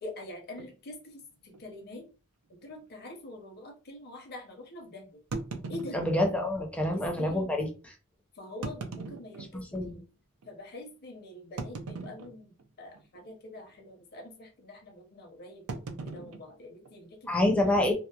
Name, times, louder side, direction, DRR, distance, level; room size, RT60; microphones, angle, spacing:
voice 1, 0.0-2.0 2.5-5.1 5.7-6.0 6.9-7.5 8.4-10.1 10.4-15.7 16.0-17.9, left 1 dB, 45° left, 3 dB, 0.7 m, -45 dB
sound 1, 0.6-0.8 1.5-1.6 1.9-2.0 2.6-2.7 5.3-6.5 7.3-7.4 8.5-9.9 10.4-10.5 11.6-12.7 12.9-13.3 13.6-13.9 15.7-17.3, right 3 dB, 80° right, 0.5 m, -40 dB
voice 2, 5.9-7.9 9.7-10.0 17.3-17.9, left 1 dB, 5° left, 1 dB, 0.5 m, -27 dB
2.8 x 2.0 x 2.3 m, 0.33 s
head